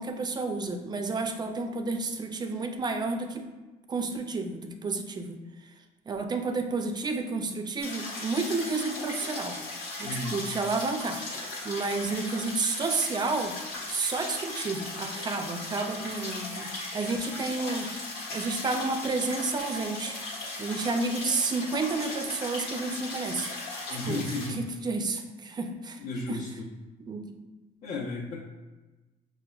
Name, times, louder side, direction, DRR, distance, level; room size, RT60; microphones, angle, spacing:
voice 1, 0.0-3.5 3.9-5.7 6.1-9.6 10.0-11.3 11.6-13.5 13.9-17.9 18.3-20.1 20.6-23.5 23.9-26.0 26.3-26.4 27.0-27.4, right 3 dB, 25° right, 5 dB, 0.4 m, -31 dB
sound 1, 7.8-24.5, left 2 dB, 90° left, 1.1 m, -37 dB
voice 2, 10.0-10.4 23.9-24.6 26.0-26.7 27.8-28.4, left 2 dB, 60° left, -7 dB, 0.6 m, -34 dB
5.7 x 2.1 x 2.3 m, 1.2 s
cardioid pair, 110°, 17 cm